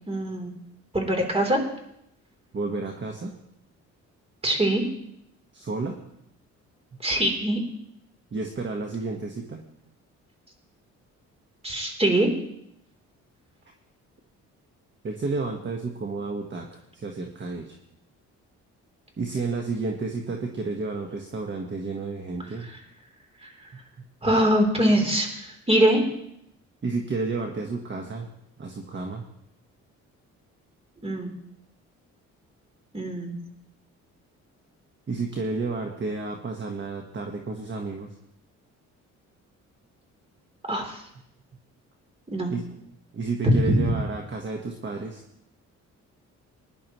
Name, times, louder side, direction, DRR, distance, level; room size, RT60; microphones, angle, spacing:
voice 1, 0.1-0.5 0.9-1.6 4.4-4.8 7.0-7.6 11.6-12.3 24.2-25.3 25.7-26.0 31.0-31.3 32.9-33.4 40.7-41.0 42.3-42.5 43.4-43.7, right 1 dB, 20° right, 2 dB, 3.6 m, -22 dB
voice 2, 2.5-3.3 5.5-5.9 8.3-9.6 15.0-17.8 19.2-22.7 26.8-28.3 28.6-29.3 35.1-38.1 42.5-42.8 43.1-45.2, right 3 dB, 40° right, 2 dB, 1.5 m, -31 dB
20.5 x 11.0 x 3.1 m, 0.78 s
cardioid pair, 90°, 30 cm